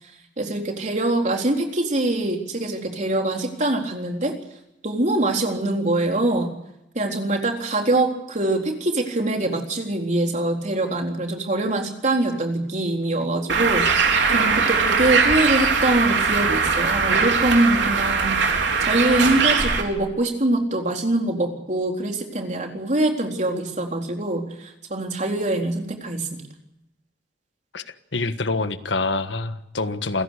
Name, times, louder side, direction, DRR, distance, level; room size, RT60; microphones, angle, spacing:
voice 1, 0.4-4.3 4.8-6.5 6.9-26.4, right 2 dB, 40° right, 2 dB, 3.9 m, -24 dB
Bird, 13.5-19.8, right 5 dB, 75° right, 3.9 m, -20 dB
voice 2, 28.1-30.2, left 3 dB, 80° left, 10 dB, 1.5 m, -26 dB
28.5 x 16.5 x 8.3 m, 0.87 s
head